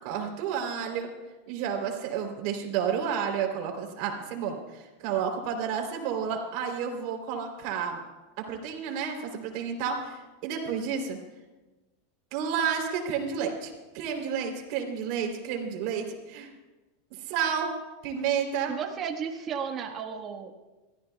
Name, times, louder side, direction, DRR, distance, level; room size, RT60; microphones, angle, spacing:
voice 1, 0.0-1.1 1.5-8.0 8.5-11.2 12.3-16.5 17.3-17.7 18.0-18.8, right 7 dB, 60° right, 3 dB, 3.3 m, -31 dB
voice 2, 18.7-20.5, right 7 dB, 35° right, 3 dB, 1.4 m, -34 dB
25.0 x 14.0 x 2.3 m, 1.2 s
supercardioid pair, 115°, 0 cm